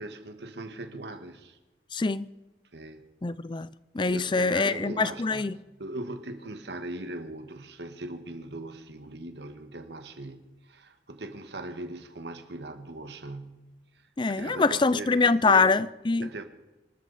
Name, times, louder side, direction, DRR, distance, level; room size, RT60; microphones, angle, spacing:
voice 1, 0.0-1.6 2.7-3.0 4.0-13.7 14.4-15.7 16.2-16.4, right 2 dB, 75° right, 1.6 m, -40 dB
voice 2, 1.9-2.3 3.2-3.7 3.9-5.5 14.2-16.3, left 4 dB, 25° left, 0.4 m, -24 dB
25.5 x 13.0 x 4.2 m
head